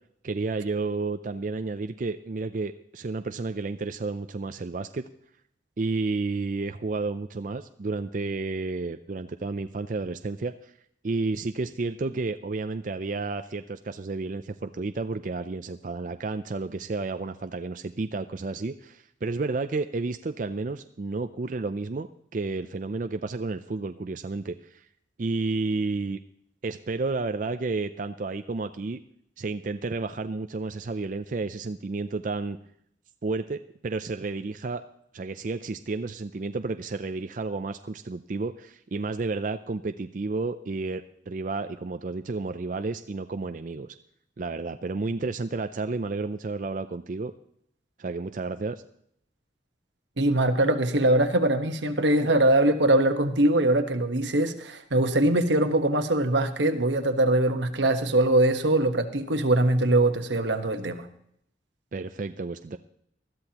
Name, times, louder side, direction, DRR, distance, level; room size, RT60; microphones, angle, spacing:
voice 1, 0.2-5.0 5.8-10.7 11.0-22.1 22.3-24.8 25.2-26.2 26.6-29.0 29.4-32.6 33.2-34.8 35.1-43.9 44.4-47.3 48.0-48.8 61.9-62.8, right 3 dB, 45° right, 9 dB, 0.4 m, -31 dB
voice 2, 50.2-61.1, right 1 dB, 85° right, 7 dB, 1.2 m, -22 dB
20.0 x 13.5 x 2.9 m, 0.71 s
head